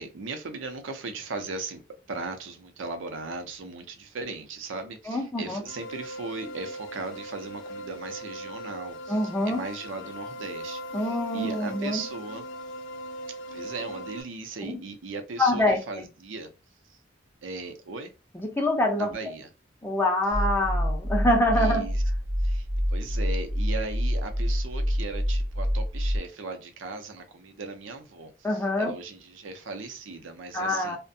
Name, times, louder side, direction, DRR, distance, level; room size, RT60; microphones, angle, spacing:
voice 1, 0.0-1.8 2.1-9.2 9.5-12.4 13.5-16.5 16.9-17.0 17.4-18.1 19.0-19.5 21.5-22.0 22.4-31.0, right 3 dB, 90° right, 0.6 m, -38 dB
voice 2, 5.1-5.6 9.1-9.6 10.9-12.0 14.6-14.8 15.4-16.0 18.3-19.1 19.8-21.9 28.4-28.9 30.5-31.0, left 1 dB, 10° left, 0.5 m, -25 dB
sound 1, 5.7-14.2, equal, 90° left, 0.4 m, -39 dB
sound 2, 20.3-26.2, equal, 40° right, 0.5 m, -27 dB
2.5 x 2.1 x 2.6 m
head